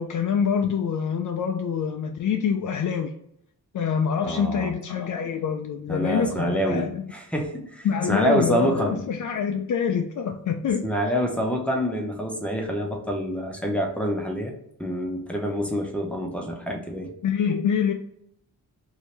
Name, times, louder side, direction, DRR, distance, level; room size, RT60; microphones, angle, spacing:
voice 1, 0.0-3.1 3.7-7.0 7.8-10.8 17.2-17.9, left 7 dB, 55° left, 4 dB, 0.4 m, -25 dB
voice 2, 4.2-4.7 5.9-9.0 10.8-14.5 14.8-17.1, equal, 5° left, 0 dB, 0.9 m, -27 dB
2.8 x 2.8 x 3.2 m, 0.72 s
cardioid pair, 60°, 37 cm